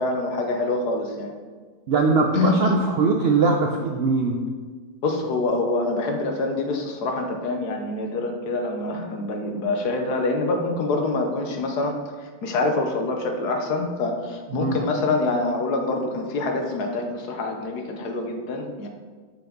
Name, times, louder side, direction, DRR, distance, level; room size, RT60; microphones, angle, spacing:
voice 1, 0.0-1.3 2.3-2.8 5.0-18.9, left 2 dB, 80° left, 4 dB, 1.5 m, -25 dB
voice 2, 1.9-4.4 14.5-14.8, right 4 dB, 70° right, 2 dB, 0.5 m, -21 dB
6.8 x 5.9 x 3.9 m, 1.5 s
omnidirectional pair, 1.7 m